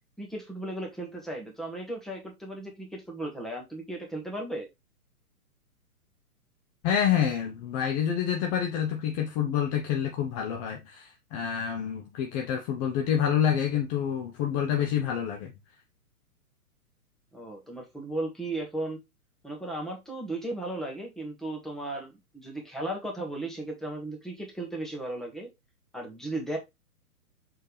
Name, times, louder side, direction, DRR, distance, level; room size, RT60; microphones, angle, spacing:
voice 1, 0.2-4.7 17.3-19.0 19.4-25.5 25.9-26.6, right 1 dB, ahead, 1.7 m, -35 dB
voice 2, 6.8-15.5, left 9 dB, 25° left, 0.9 m, -28 dB
6.4 x 4.5 x 3.3 m
figure-of-eight pair, 120°, 45 cm